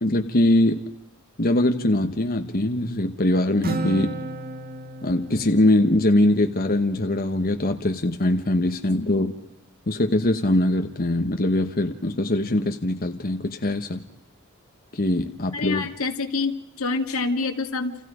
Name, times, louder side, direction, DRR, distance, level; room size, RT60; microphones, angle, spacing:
voice 1, 0.0-0.8 1.4-4.2 5.0-9.4 9.9-14.0 14.9-15.9, left 1 dB, 45° left, 6 dB, 1.2 m, -22 dB
Acoustic guitar, 3.6-7.3, right 2 dB, 45° right, 1.7 m, -34 dB
voice 2, 15.5-18.0, left 3 dB, 75° left, 5 dB, 2.1 m, -26 dB
29.5 x 28.5 x 5.1 m, 0.87 s
head